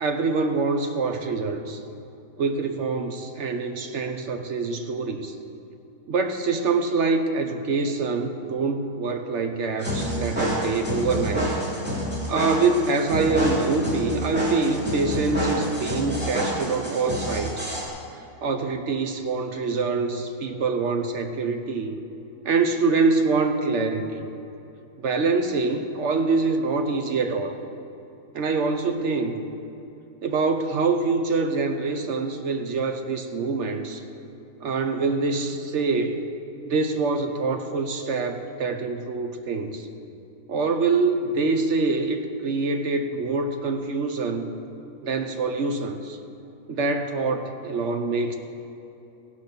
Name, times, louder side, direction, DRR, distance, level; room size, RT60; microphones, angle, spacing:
voice 1, 0.0-1.8 2.4-5.3 6.1-11.5 12.3-17.7 18.4-21.9 22.4-24.2 25.0-27.6 28.3-29.4 30.2-34.0 34.6-36.3 36.6-39.9 40.5-44.5 45.0-46.2 46.7-48.3, right 4 dB, 55° right, 6 dB, 0.9 m, -25 dB
sound 1, 9.8-17.8, equal, 5° right, 2.9 m, -28 dB
16.5 x 6.1 x 5.9 m, 2.9 s
omnidirectional pair, 1.7 m